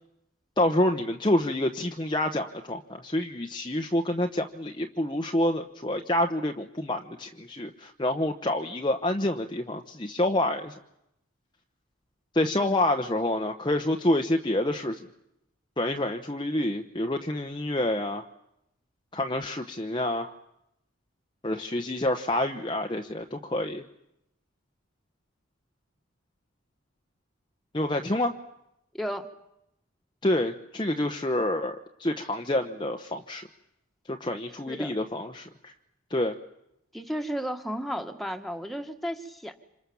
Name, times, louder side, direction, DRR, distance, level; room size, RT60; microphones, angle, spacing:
voice 1, 0.6-10.7 12.3-15.0 15.8-18.3 19.1-20.3 21.4-23.8 27.7-28.3 30.2-33.5 34.1-35.7 36.1-36.3, left 1 dB, 25° left, 4 dB, 1.1 m, -27 dB
voice 2, 28.9-29.3 34.7-34.9 36.9-39.6, equal, ahead, 5 dB, 1.9 m, -33 dB
27.5 x 26.5 x 7.2 m, 0.82 s
head